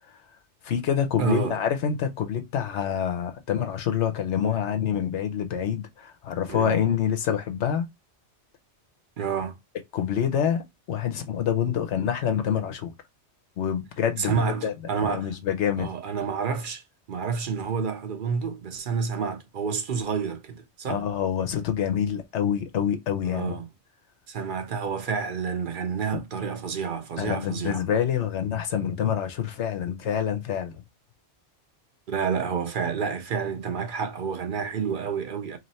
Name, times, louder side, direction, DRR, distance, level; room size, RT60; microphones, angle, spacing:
voice 1, 0.6-7.8 9.9-10.6 10.9-12.9 13.6-14.7 15.0-15.9 20.9-23.6 27.2-30.8, left 8 dB, 75° left, 1.0 m, -26 dB
voice 2, 1.2-1.6 6.5-6.8 9.2-9.6 14.2-15.3 15.8-16.8 17.1-21.1 23.2-23.7 24.3-27.8 32.1-35.6, right 6 dB, 55° right, 0.7 m, -29 dB
3.1 x 2.9 x 4.1 m
omnidirectional pair, 1.2 m